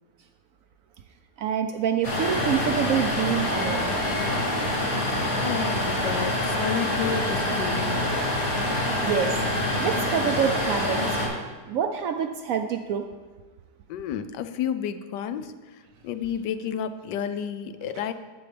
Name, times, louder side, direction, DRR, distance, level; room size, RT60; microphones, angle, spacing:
voice 1, 1.4-4.0 9.0-9.4 9.8-11.2 11.7-13.1, right 8 dB, 70° right, 7 dB, 0.8 m, -26 dB
sound 1, 2.0-11.3, left 1 dB, 55° left, 2.3 m, -26 dB
voice 2, 5.4-8.1 13.9-18.1, left 8 dB, 90° left, 11 dB, 1.2 m, -31 dB
11.0 x 7.8 x 3.3 m, 1.3 s
omnidirectional pair, 1.8 m